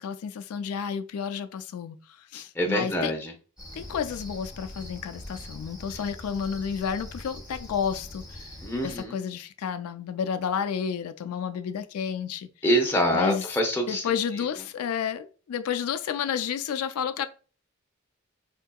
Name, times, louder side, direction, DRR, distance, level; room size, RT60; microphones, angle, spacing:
voice 1, 0.0-3.1 3.7-8.5 8.8-12.5 13.1-13.5 13.9-17.3, left 7 dB, 85° left, 0.3 m, -31 dB
voice 2, 2.3-3.3 8.6-9.2 12.6-14.0, equal, 10° left, 0.7 m, -25 dB
Cricket, 3.6-9.1, left 1 dB, 5° right, 1.2 m, -43 dB
4.3 x 2.7 x 2.2 m
head